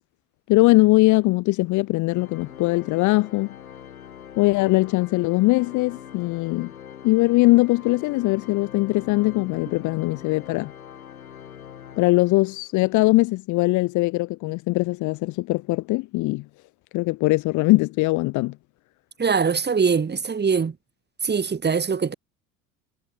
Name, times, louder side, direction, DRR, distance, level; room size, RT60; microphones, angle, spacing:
voice 1, 0.5-3.5 4.4-6.7 7.0-10.7 12.0-16.5 16.9-18.6, left 22 dB, 45° left, 0.9 m, -21 dB
Organ, 2.1-12.7, left 9 dB, 75° left, 7.3 m, -42 dB
voice 2, 19.2-20.8 21.2-22.1, right 5 dB, 25° right, 6.1 m, -22 dB
figure-of-eight pair, 70°, 44 cm